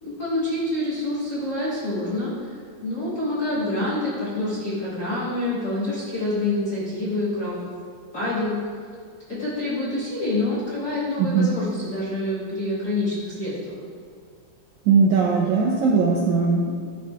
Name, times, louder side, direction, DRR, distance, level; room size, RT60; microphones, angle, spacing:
voice 1, 0.0-7.6 8.1-8.6 9.3-13.8, left 2 dB, 60° left, -10 dB, 1.0 m, -27 dB
voice 2, 14.9-16.7, right 5 dB, 85° right, -2 dB, 1.7 m, -19 dB
11.5 x 4.5 x 2.3 m, 2.2 s
omnidirectional pair, 4.0 m